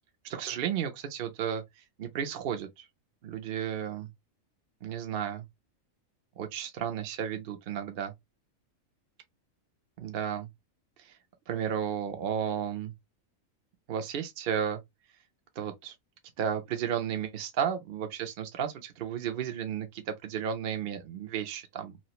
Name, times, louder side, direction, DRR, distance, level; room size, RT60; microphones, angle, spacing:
voice 1, 0.2-1.6 2.0-2.8 3.2-4.1 4.8-5.4 6.4-8.1 10.0-10.5 11.5-12.9 13.9-14.8 15.6-15.9 16.4-22.0, right 8 dB, 55° right, 0.7 m, -33 dB
3.0 x 2.4 x 2.8 m
omnidirectional pair, 1.4 m